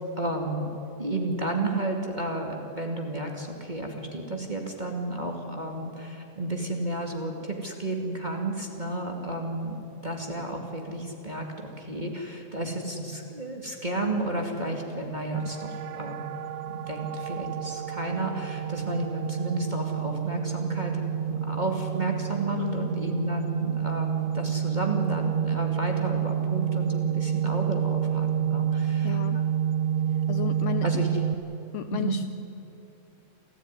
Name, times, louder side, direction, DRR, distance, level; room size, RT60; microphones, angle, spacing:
voice 1, 0.2-0.7 1.0-9.7 10.0-16.2 16.7-29.4 30.8-31.1 31.9-32.2, right 2 dB, 15° right, 1 dB, 2.2 m, -32 dB
sound 1, 15.3-31.3, right 9 dB, 70° right, 2.1 m, -29 dB
voice 2, 22.5-23.0 29.0-29.4 30.3-30.9 31.7-32.3, left 14 dB, 75° left, 10 dB, 1.7 m, -33 dB
28.0 x 15.0 x 9.9 m, 2.9 s
omnidirectional pair, 3.5 m